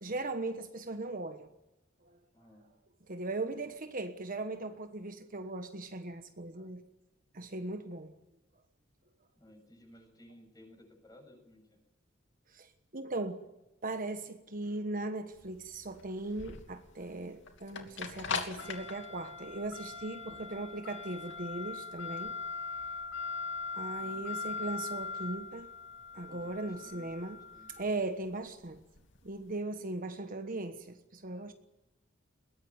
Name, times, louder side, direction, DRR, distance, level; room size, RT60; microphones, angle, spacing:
voice 1, 0.0-1.5 2.1-2.2 3.1-6.8 7.3-8.1 12.5-12.7 12.9-13.4 13.8-22.3 23.7-25.7 26.1-27.4 27.8-28.8 29.2-31.5, right 2 dB, 45° right, 1.3 m, -38 dB
voice 2, 2.3-2.6 9.4-11.6 20.3-20.7 24.0-24.4 26.3-27.7, left 1 dB, 20° left, 7.2 m, -57 dB
sound 1, 15.3-29.4, left 4 dB, 65° left, 2.9 m, -41 dB
22.0 x 18.0 x 9.6 m
head